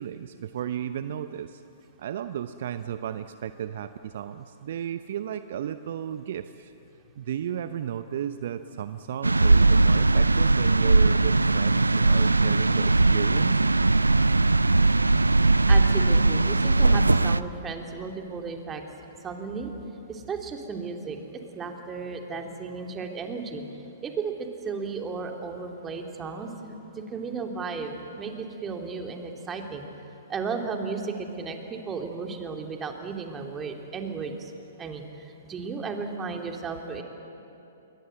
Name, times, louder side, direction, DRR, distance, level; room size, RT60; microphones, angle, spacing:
voice 1, 0.0-1.6 2.0-6.7 7.2-13.7, right 9 dB, 55° right, 11 dB, 0.7 m, -34 dB
sound 1, 6.4-16.4, left 3 dB, 50° left, 6.5 m, -49 dB
sound 2, 9.2-17.4, right 2 dB, 90° right, 0.6 m, -20 dB
voice 2, 15.7-18.8 19.2-19.7 20.1-21.2 21.5-23.6 24.0-29.9 30.3-34.5 34.8-37.0, right 4 dB, 20° right, 3 dB, 2.9 m, -34 dB
28.0 x 22.5 x 7.8 m, 2.9 s
figure-of-eight pair, 120°, 0 cm